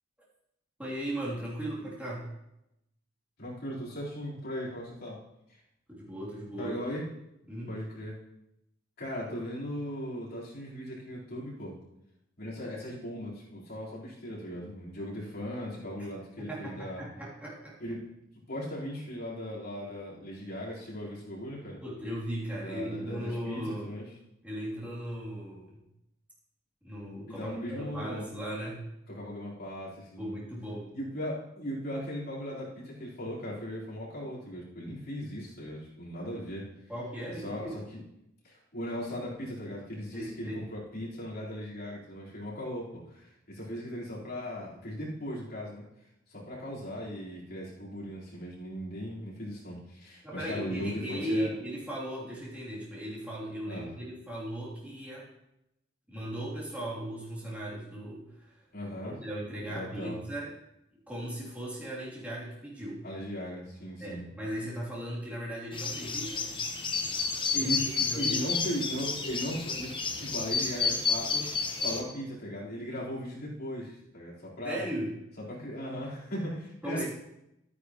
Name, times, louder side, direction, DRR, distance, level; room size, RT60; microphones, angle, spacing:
voice 1, 0.8-2.3 5.9-6.8 7.5-7.8 16.4-17.8 21.8-23.9 24.4-25.8 26.8-28.8 30.2-30.9 36.9-37.7 40.1-40.6 50.2-55.3 56.1-58.5 58.9-60.5 61.1-63.0 64.0-66.5 67.6-67.7 68.0-68.4 74.6-75.1 76.8-77.1, equal, 5° right, -8 dB, 3.2 m, -37 dB
voice 2, 3.4-5.2 6.6-7.0 7.7-8.1 9.0-11.7 12.4-17.0 17.8-18.0 18.5-21.8 22.6-24.1 27.3-28.2 29.1-30.4 30.9-36.7 37.3-38.0 38.4-45.8 46.3-51.5 53.7-53.9 58.7-59.1 59.6-60.1 63.0-64.2 67.5-71.4 71.8-74.8 75.4-77.1, equal, 55° left, -7 dB, 4.3 m, -38 dB
sound 1, 65.7-72.0, left 5 dB, 25° left, 1.0 m, -31 dB
12.5 x 9.7 x 3.1 m, 0.84 s
head